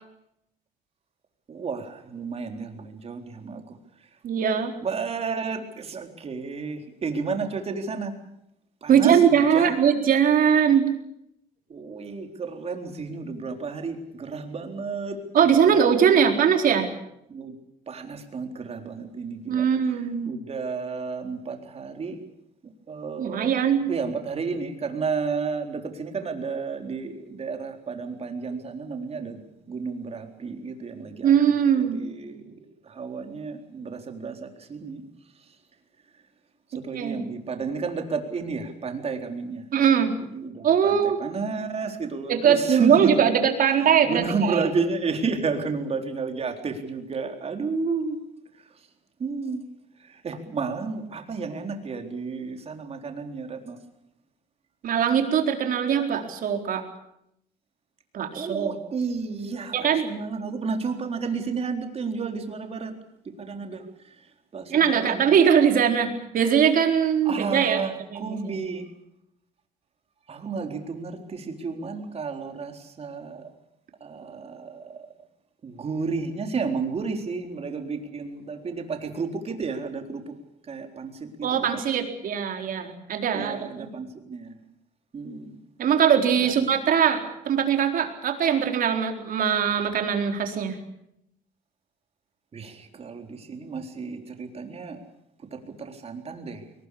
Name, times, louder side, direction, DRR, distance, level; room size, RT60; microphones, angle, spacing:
voice 1, 1.5-3.8 4.8-8.1 8.8-9.8 11.7-16.7 17.3-17.6 17.9-19.7 20.3-22.2 22.9-31.3 31.9-35.0 36.8-39.7 40.3-43.2 43.8-48.2 49.2-49.6 50.0-53.8 58.3-62.9 63.3-64.3 64.5-65.2 67.3-68.8 70.3-73.5 74.0-75.1 75.6-80.3 80.7-81.7 83.3-84.6 85.1-85.6 86.3-86.8 92.5-95.0 95.5-96.6, right 4 dB, 35° right, 4 dB, 4.0 m, -32 dB
voice 2, 4.2-4.7 8.9-10.8 15.3-16.9 19.5-20.4 23.2-23.8 31.2-32.0 36.9-37.3 39.7-40.1 40.6-41.2 42.3-44.7 54.8-56.8 58.1-58.7 59.7-60.0 64.7-67.8 68.1-68.5 81.4-83.9 85.8-90.8, right 8 dB, 55° right, 4 dB, 4.2 m, -21 dB
22.0 x 20.0 x 8.6 m, 0.80 s
cardioid pair, 110°, 17 cm